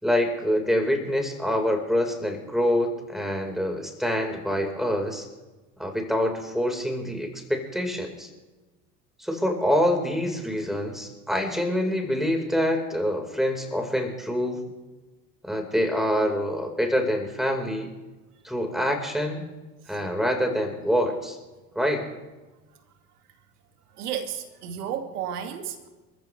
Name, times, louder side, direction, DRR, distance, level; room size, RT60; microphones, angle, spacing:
voice 1, 0.0-5.3 5.8-8.3 9.2-14.6 15.4-17.9 18.4-19.5 19.9-21.4 21.7-22.1, equal, ahead, 3 dB, 4.4 m, -26 dB
voice 2, 24.0-25.9, right 9 dB, 70° right, 6 dB, 2.4 m, -32 dB
29.5 x 14.5 x 3.3 m, 1.2 s
hypercardioid pair, 75°, 47 cm